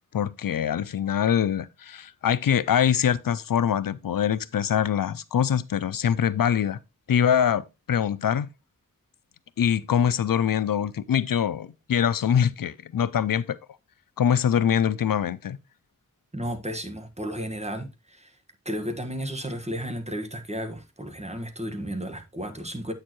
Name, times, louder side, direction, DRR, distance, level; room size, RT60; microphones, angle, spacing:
voice 1, 0.1-6.8 7.1-8.5 9.6-13.6 14.2-15.6, left 8 dB, 90° left, 0.5 m, -24 dB
voice 2, 16.3-18.3 18.6-22.9, equal, 20° right, 1.5 m, -33 dB
8.4 x 6.6 x 3.0 m
wide cardioid pair, 45°, 33 cm